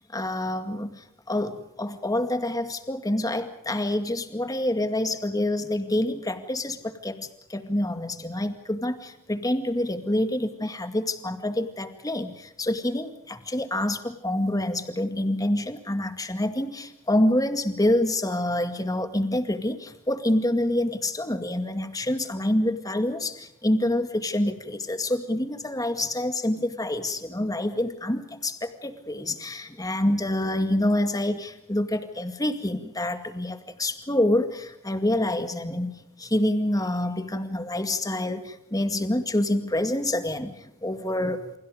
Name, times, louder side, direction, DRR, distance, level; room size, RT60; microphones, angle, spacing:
voice 1, 0.1-41.5, left 1 dB, 15° left, 8 dB, 2.1 m, -27 dB
29.0 x 27.0 x 5.1 m, 0.79 s
head